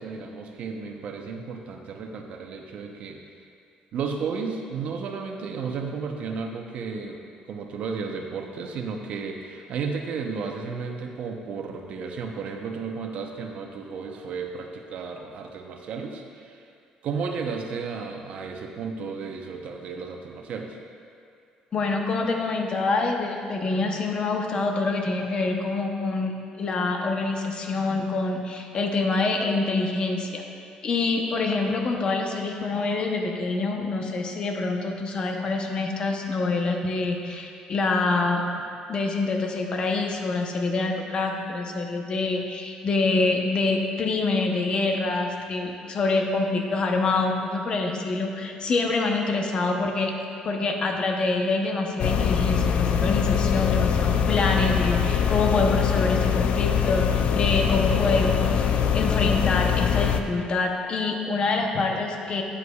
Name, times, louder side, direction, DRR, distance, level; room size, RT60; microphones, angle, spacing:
voice 1, 0.0-3.2 3.9-7.2 7.5-16.6 17.0-20.8, right 5 dB, 60° right, 3 dB, 0.7 m, -33 dB
voice 2, 21.7-30.4 30.8-38.4 38.9-50.1 50.4-62.4, left 3 dB, 40° left, 2 dB, 0.8 m, -26 dB
sound 1, 52.0-60.2, left 8 dB, 60° left, 0.4 m, -23 dB
9.7 x 8.0 x 2.4 m, 2.4 s
cardioid pair, 130°, 2 cm